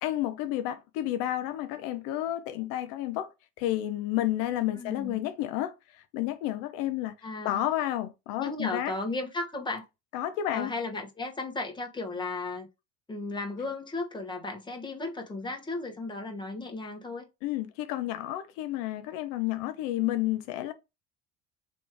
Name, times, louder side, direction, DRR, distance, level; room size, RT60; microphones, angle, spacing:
voice 1, 0.0-3.3 3.6-7.1 7.4-8.9 10.1-10.7 17.4-20.7, left 13 dB, 80° left, 0.6 m, -31 dB
voice 2, 4.7-5.2 7.2-7.6 8.4-9.8 10.5-12.7 13.1-17.3, left 2 dB, 15° left, 1.2 m, -35 dB
3.1 x 3.1 x 4.7 m
supercardioid pair, 110°, 33 cm